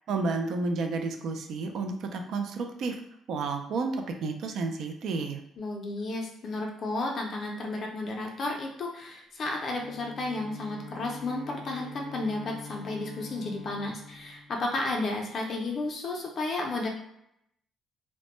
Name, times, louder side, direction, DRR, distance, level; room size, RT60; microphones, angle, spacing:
voice 1, 0.1-3.0 3.3-5.4, right 3 dB, 65° right, 4 dB, 0.3 m, -31 dB
voice 2, 5.6-16.9, left 2 dB, 45° left, 0 dB, 0.4 m, -33 dB
Bowed string instrument, 9.6-15.3, left 3 dB, 85° right, 1.0 m, -45 dB
2.1 x 2.0 x 3.0 m, 0.78 s
cardioid pair, 120°, 0 cm